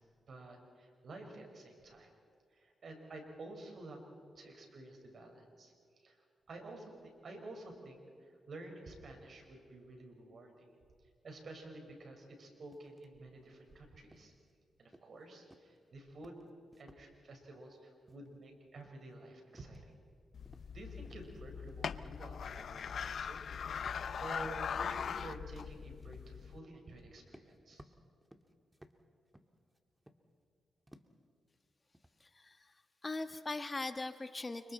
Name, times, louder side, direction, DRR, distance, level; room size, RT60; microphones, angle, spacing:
voice 1, 0.3-2.1 2.5-4.0 4.4-10.8 11.2-14.3 14.8-16.4 16.8-19.9 20.7-23.5 24.2-27.8, right 2 dB, 60° right, 3 dB, 5.3 m, -51 dB
sound 1, 12.7-13.1 13.4-13.7 14.1-14.5 14.9-15.3 15.5-17.1 17.4-17.8 18.1-18.5 18.8-20.1 20.4-20.8 21.0-21.9 22.2-23.2 23.9-24.1 24.6-24.7 25.0-25.3 26.0-26.3 26.9-27.0 27.3-30.5 30.9-31.3 31.7-32.5, right 1 dB, 10° right, 1.8 m, -62 dB
sound 2, 20.3-26.6, left 7 dB, 70° left, 0.6 m, -41 dB
voice 2, 32.2-34.7, left 2 dB, 30° left, 9 dB, 1.3 m, -41 dB
29.5 x 26.0 x 4.4 m, 2.3 s
cardioid pair, 55°, 0 cm